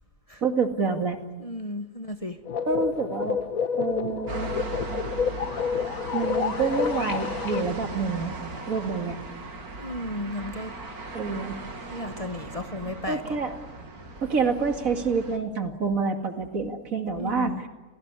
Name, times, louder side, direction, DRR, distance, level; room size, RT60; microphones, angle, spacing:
voice 1, 0.4-1.2 2.7-3.4 3.8-4.5 6.1-8.3 8.7-9.2 11.1-11.6 13.1-13.6 14.2-17.7, right 5 dB, 65° right, 6 dB, 2.6 m, -27 dB
voice 2, 1.4-2.4 9.8-10.7 11.9-13.2 17.2-17.6, left 1 dB, 25° left, 7 dB, 1.3 m, -34 dB
sound 1, 2.5-7.6, left 6 dB, 70° left, 1.6 m, -29 dB
sound 2, 4.3-15.4, right 3 dB, 85° right, 3.1 m, -38 dB
28.5 x 17.5 x 9.7 m, 1.2 s
omnidirectional pair, 1.5 m